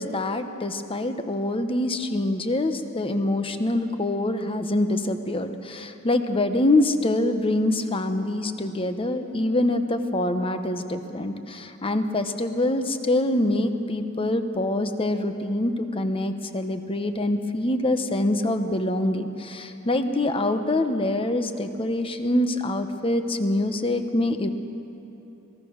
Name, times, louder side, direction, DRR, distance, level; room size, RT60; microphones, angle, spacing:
voice 1, 0.0-24.5, left 1 dB, 25° left, 8 dB, 1.1 m, -25 dB
25.5 x 18.5 x 6.5 m, 2.9 s
head